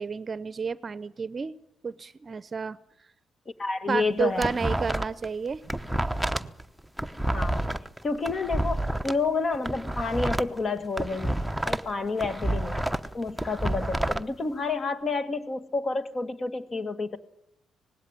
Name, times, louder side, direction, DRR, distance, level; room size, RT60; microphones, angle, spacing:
voice 1, 0.0-1.5 1.8-2.8 3.9-5.8, right 5 dB, 35° right, 17 dB, 0.8 m, -31 dB
voice 2, 3.6-4.6 7.3-7.8 8.0-12.9 13.1-17.2, left 3 dB, 35° left, 10 dB, 1.9 m, -29 dB
sound 1, 4.0-5.3 5.5-9.1 9.5-11.9 12.2-14.2, right 1 dB, ahead, 0.9 m, -29 dB
19.5 x 16.5 x 9.8 m, 0.77 s
cardioid pair, 90°, 0 cm